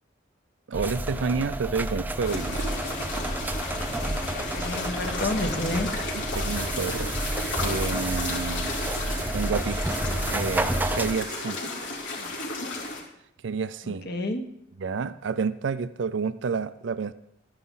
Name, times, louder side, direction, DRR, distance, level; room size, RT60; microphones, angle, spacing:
sound 1, 0.7-11.1, right 1 dB, 10° right, 0.5 m, -30 dB
voice 1, 0.7-2.7 6.4-7.2 7.6-8.8 9.3-9.9 10.3-11.6 13.4-14.1 14.8-17.1, right 5 dB, 75° right, 14 dB, 0.4 m, -29 dB
sound 2, 2.2-13.0, left 2 dB, 75° left, 3.1 m, -33 dB
voice 2, 4.5-5.9 10.1-10.2 12.2-12.3 13.8-14.4, left 2 dB, 55° left, 5 dB, 1.2 m, -30 dB
13.0 x 9.7 x 3.8 m, 0.77 s
head